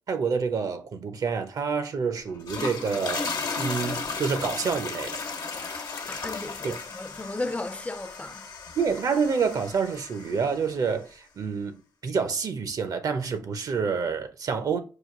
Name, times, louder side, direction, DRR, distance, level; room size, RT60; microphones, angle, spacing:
voice 1, 0.1-3.3 3.6-5.2 6.6-6.8 8.8-11.8 12.0-14.8, right 5 dB, 60° right, 0.7 m, -28 dB
sound 1, 2.3-10.6, left 4 dB, 70° left, 1.1 m, -35 dB
voice 2, 6.1-8.4, left 2 dB, 20° left, 0.5 m, -35 dB
5.0 x 2.4 x 3.6 m
cardioid pair, 65°, 7 cm